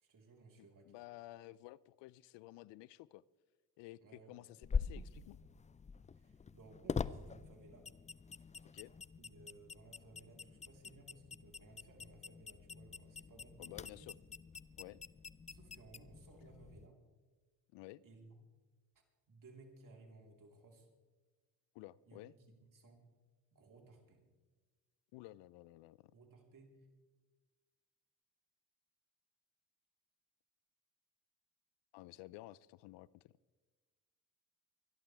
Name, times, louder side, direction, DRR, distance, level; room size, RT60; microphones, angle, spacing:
voice 1, 0.0-1.0 4.0-4.6 6.1-7.9 9.2-14.1 15.5-17.0 18.0-18.4 18.9-20.9 22.1-22.2 22.5-23.0 23.5-24.2 26.1-26.9, right 3 dB, 45° right, 1 dB, 3.9 m, -60 dB
voice 2, 0.6-3.2 3.8-5.4 8.7-8.9 13.6-14.1 14.8-15.0 17.7-18.0 21.7-22.3 25.1-26.1 31.9-33.3, left 17 dB, 75° left, 22 dB, 0.6 m, -53 dB
sound 1, 4.6-16.9, left 5 dB, 15° left, 0.4 m, -45 dB
24.5 x 11.5 x 3.4 m, 1.3 s
supercardioid pair, 65°, 43 cm